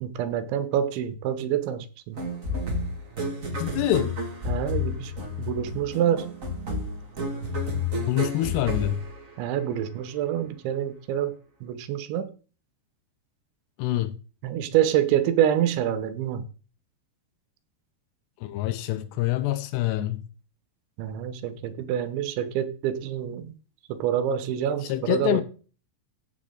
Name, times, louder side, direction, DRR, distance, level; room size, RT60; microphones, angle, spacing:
voice 1, 0.0-2.2 4.5-5.1 5.4-6.3 9.4-11.3 11.6-12.3 14.4-16.4 21.0-23.5 23.9-25.4, right 10 dB, 85° right, 3.4 m, -26 dB
sound 1, 2.2-9.8, left 2 dB, 35° right, 1.4 m, -31 dB
voice 2, 3.6-4.2 8.1-9.0 13.8-14.2 18.4-20.2 24.8-25.4, left 14 dB, 80° left, 2.7 m, -26 dB
15.5 x 7.6 x 3.9 m
omnidirectional pair, 5.2 m